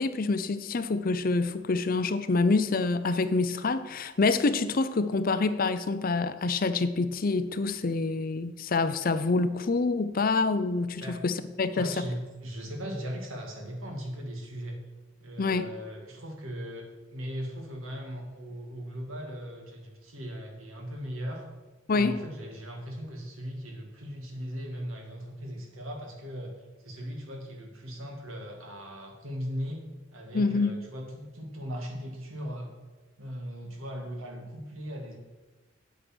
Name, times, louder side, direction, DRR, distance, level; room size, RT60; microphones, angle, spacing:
voice 1, 0.0-12.0 15.4-15.7 21.9-22.2 30.3-30.7, left 3 dB, 45° left, 12 dB, 0.5 m, -26 dB
voice 2, 11.7-14.8 15.2-16.9 17.1-21.5 21.9-26.6 26.8-29.8 30.1-32.7 33.2-35.2, equal, 90° right, 1 dB, 2.4 m, -38 dB
8.7 x 8.2 x 6.1 m, 1.2 s
head